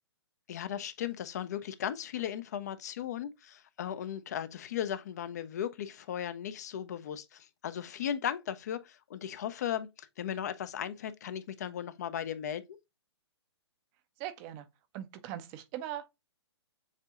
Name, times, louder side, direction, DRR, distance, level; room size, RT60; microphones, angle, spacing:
voice 1, 0.5-12.6, left 9 dB, 40° left, 0.4 m, -36 dB
voice 2, 14.2-14.7 14.9-16.1, right 12 dB, 20° right, 0.5 m, -40 dB
7.2 x 2.7 x 2.4 m
figure-of-eight pair, 120°, 15 cm